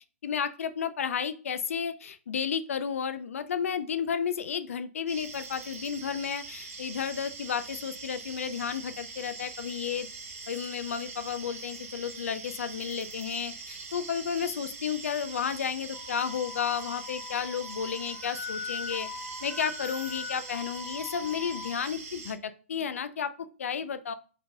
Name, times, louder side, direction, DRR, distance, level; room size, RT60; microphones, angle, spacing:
voice 1, 0.2-10.1 10.5-19.1 19.4-24.1, left 7 dB, 70° left, 12 dB, 0.4 m, -32 dB
sound 1, 5.1-22.3, right 4 dB, 85° right, 1.1 m, -43 dB
Wind instrument woodwind instrument, 15.9-21.7, left 5 dB, 10° left, 0.4 m, -41 dB
4.7 x 3.3 x 2.2 m, 0.37 s
hypercardioid pair, 170°, 8 cm